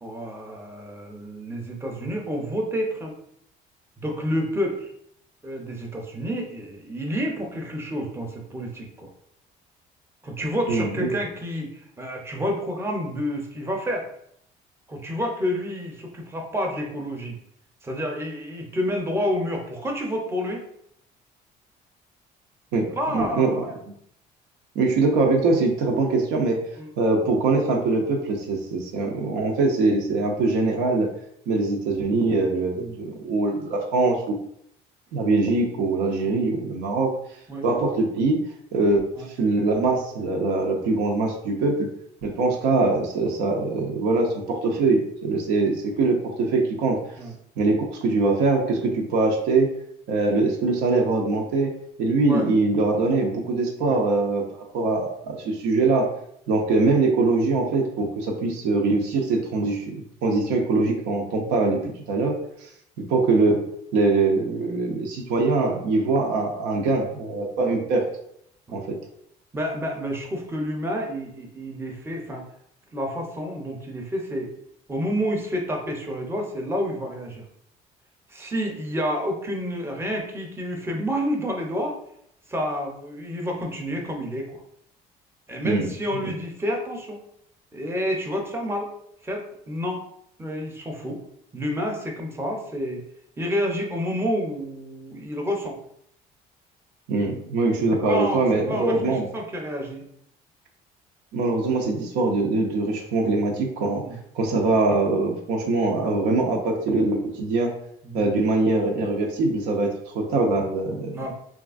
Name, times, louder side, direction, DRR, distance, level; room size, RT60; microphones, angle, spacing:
voice 1, 0.0-3.1 4.0-4.9 5.4-9.1 10.2-14.1 14.9-17.3 17.8-20.6 22.7-23.8 26.8-26.9 32.7-33.0 36.2-36.4 37.5-37.6 39.2-39.3 47.2-47.3 52.3-52.5 53.8-54.0 68.7-68.8 69.5-72.5 72.9-74.5 74.9-77.4 78.3-82.0 82.5-84.6 85.5-87.2 87.7-88.9 89.2-90.0 90.4-91.2 91.5-93.0 93.4-95.8 98.1-100.0 103.9-104.2 108.0-108.3 111.1-111.3, equal, 15° right, 1 dB, 0.6 m, -29 dB
voice 2, 10.7-11.2 22.7-23.5 24.8-26.7 27.0-31.1 31.5-34.4 35.1-37.1 37.6-38.4 38.7-41.9 42.2-47.0 47.6-49.7 50.1-51.7 52.0-56.1 56.5-62.4 62.6-62.7 63.1-63.6 63.9-68.1 68.7-69.0 85.6-85.9 86.2-86.3 97.1-99.3 101.3-104.0 104.3-107.7 108.1-111.2, right 3 dB, 90° right, 1 dB, 0.5 m, -23 dB
3.1 x 2.4 x 2.4 m, 0.71 s
cardioid pair, 110°, 17 cm